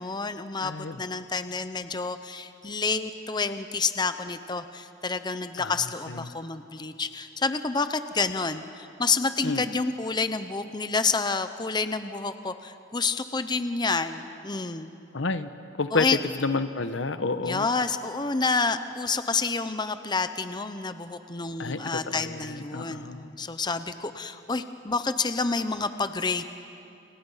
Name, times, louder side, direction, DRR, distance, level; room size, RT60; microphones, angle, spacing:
voice 1, 0.0-14.9 15.9-16.2 17.4-26.4, left 4 dB, 25° left, 10 dB, 0.8 m, -29 dB
voice 2, 0.6-1.0 5.6-5.7 6.1-6.2 9.4-9.6 15.1-15.5 15.8-16.1 16.4-17.7 21.6-23.3, left 3 dB, 75° left, 11 dB, 1.1 m, -30 dB
29.5 x 29.0 x 5.7 m, 2.6 s
head